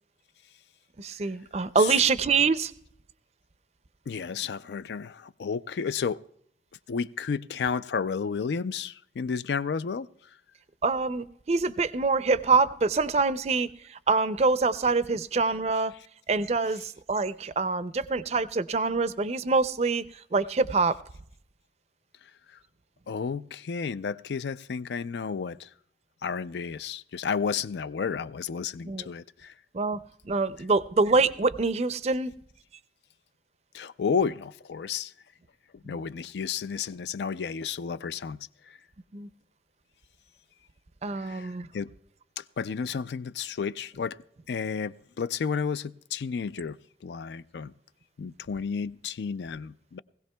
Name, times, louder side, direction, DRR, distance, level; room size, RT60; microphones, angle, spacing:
voice 1, 1.0-2.7 10.8-15.9 16.3-20.0 20.3-21.0 28.9-29.1 29.7-30.0 30.3-32.3 35.9-36.0 39.1-39.3 41.0-41.7, right 4 dB, 35° right, 0.4 m, -25 dB
voice 2, 4.1-6.2 6.9-10.1 23.1-25.7 26.2-29.5 33.7-35.1 35.9-38.4 38.7-38.8 41.2-41.9 42.4-44.2 44.5-46.8 47.0-47.7 48.2-50.0, left 6 dB, 80° left, 0.4 m, -32 dB
20.5 x 16.0 x 2.2 m
head